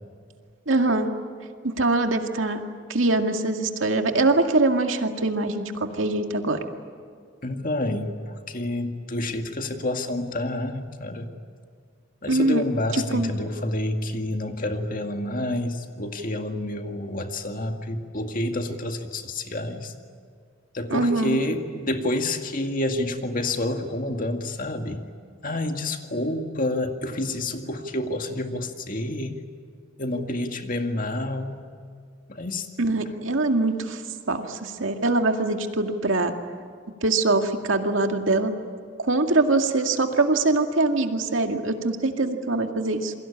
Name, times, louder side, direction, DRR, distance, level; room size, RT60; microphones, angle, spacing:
voice 1, 0.7-1.1 1.6-2.6 2.9-6.6 12.3-12.6 13.1-13.3 20.9-21.4 32.8-34.0 34.3-36.3 37.0-38.5 39.0-43.1, right 2 dB, 90° right, 4 dB, 2.1 m, -23 dB
voice 2, 7.4-11.3 12.2-19.9 20.7-25.0 25.4-29.4 30.0-31.6 32.3-32.7, left 1 dB, 45° left, 5 dB, 2.1 m, -28 dB
28.0 x 23.0 x 8.7 m, 2.1 s
head